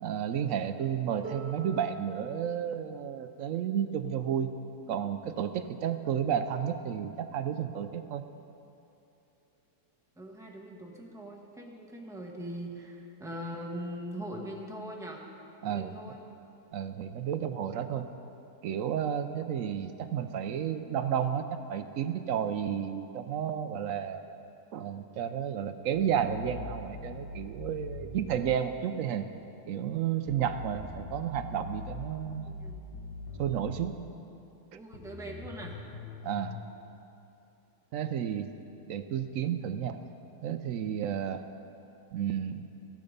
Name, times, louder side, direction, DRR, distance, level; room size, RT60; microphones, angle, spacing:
voice 1, 0.0-4.5 4.9-8.2 15.6-16.0 16.7-18.1 18.6-24.2 24.7-29.3 29.7-32.5 33.4-34.0 34.7-34.8 36.2-36.6 37.9-38.5 38.9-40.0 40.4-41.4 42.1-42.7, right 9 dB, 70° right, 10 dB, 0.8 m, -32 dB
Harp, 1.2-7.0 8.1-8.2, right 3 dB, 40° left, 4.2 m, -49 dB
voice 2, 10.2-15.2 15.6-16.2 19.4-19.6 32.5-32.8 34.7-35.8, equal, ahead, 0 dB, 1.1 m, -41 dB
sound 1, 25.9-28.5 30.3-33.9 34.9-36.6, left 3 dB, 75° left, 2.1 m, -42 dB
14.5 x 11.0 x 5.2 m, 2.8 s
omnidirectional pair, 1.9 m